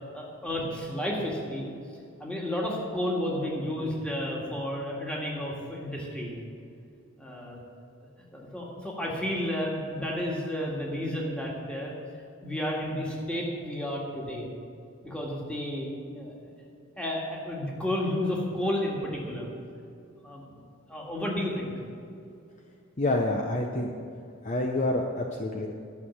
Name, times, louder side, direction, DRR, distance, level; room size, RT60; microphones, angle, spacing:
voice 1, 0.1-1.7 2.2-6.4 7.2-7.6 8.3-11.9 12.4-14.4 15.0-16.3 17.0-19.5 20.2-20.4 20.9-21.7, left 1 dB, 5° left, -3 dB, 1.9 m, -32 dB
voice 2, 23.0-23.9 24.4-25.7, left 2 dB, 35° left, 2 dB, 0.6 m, -27 dB
11.5 x 6.4 x 7.3 m, 2.5 s
head